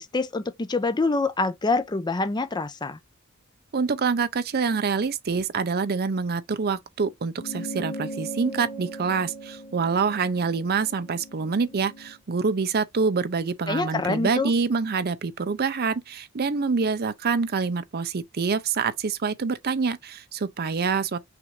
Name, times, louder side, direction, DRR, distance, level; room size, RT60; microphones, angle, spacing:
voice 1, 0.0-3.0 13.7-14.5, left 3 dB, 20° left, 0.5 m, -26 dB
voice 2, 3.7-21.2, right 5 dB, 45° right, 0.5 m, -26 dB
sound 1, 7.4-12.2, right 1 dB, 85° left, 1.5 m, -39 dB
5.9 x 2.5 x 3.1 m
head